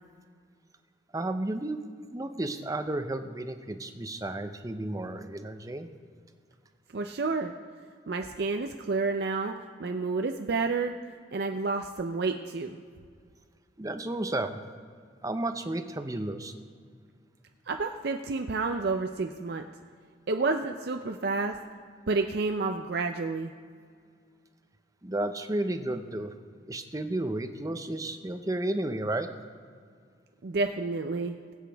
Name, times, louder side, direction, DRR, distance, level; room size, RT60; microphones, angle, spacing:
voice 1, 1.1-1.9 2.1-5.9 13.8-14.6 15.2-16.5 25.0-26.3 26.7-29.3, right 1 dB, 20° right, 8 dB, 0.6 m, -32 dB
voice 2, 6.9-7.5 8.1-9.5 9.8-10.9 11.3-12.8 17.7-19.7 20.3-21.6 22.1-23.5 30.4-31.3, right 3 dB, 60° right, 5 dB, 0.5 m, -29 dB
21.5 x 8.1 x 3.4 m, 2.1 s
head